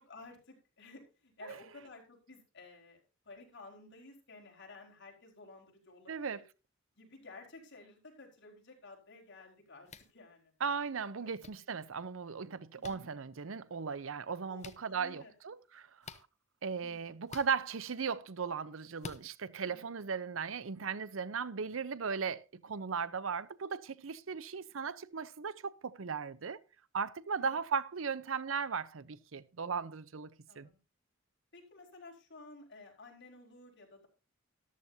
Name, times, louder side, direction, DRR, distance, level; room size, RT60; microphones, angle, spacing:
voice 1, 0.0-6.4 6.9-10.5 11.1-11.3 12.7-13.1 14.5-15.3 16.8-17.2 19.6-20.0 27.4-27.6 30.5-30.8 31.5-34.1, left 3 dB, 60° left, 4.7 m, -54 dB
voice 2, 6.1-6.4 10.6-16.2 16.6-26.6 26.9-30.3 30.6-30.7, right 5 dB, 75° right, 0.7 m, -37 dB
sound 1, 9.9-10.1 11.4-11.5 12.8-13.0 14.6-14.8 16.0-16.2 17.3-17.5 19.0-19.2, left 4 dB, 35° left, 0.8 m, -46 dB
14.0 x 12.5 x 2.8 m
head